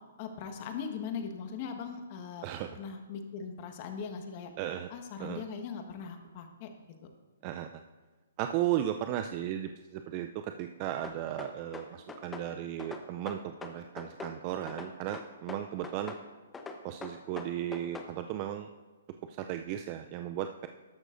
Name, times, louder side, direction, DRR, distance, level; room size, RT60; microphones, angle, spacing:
voice 1, 0.2-2.5 2.7-4.5 4.9-6.7, left 6 dB, 40° left, 5 dB, 1.3 m, -40 dB
voice 2, 2.4-2.8 4.6-4.9 5.2-5.4 7.4-7.7 8.4-16.1 16.8-18.7 19.3-20.7, right 11 dB, 35° right, 7 dB, 0.4 m, -35 dB
sound 1, 11.0-12.5 12.8-14.4 14.7-16.2 16.5-18.1, left 4 dB, 10° left, 0.8 m, -42 dB
13.5 x 11.0 x 2.6 m, 1.3 s
hypercardioid pair, 140°, 0 cm